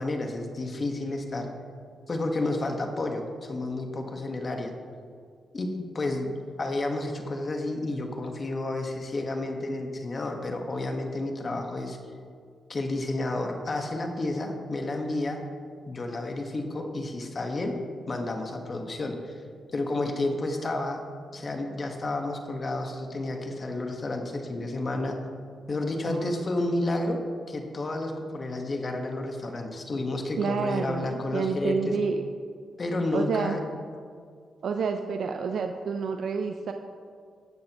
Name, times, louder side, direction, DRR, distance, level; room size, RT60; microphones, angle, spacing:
voice 1, 0.0-1.5 2.1-4.7 5.5-6.3 6.6-12.0 12.7-15.4 15.9-17.7 18.1-19.4 19.7-21.0 21.3-25.2 25.7-27.2 27.5-31.9 32.8-33.6, left 2 dB, 40° left, 3 dB, 1.4 m, -31 dB
voice 2, 26.1-26.4 30.4-32.2 33.1-33.6 34.6-36.7, right 5 dB, 70° right, 5 dB, 0.5 m, -29 dB
18.0 x 6.4 x 3.0 m, 2.2 s
cardioid pair, 65°, 0 cm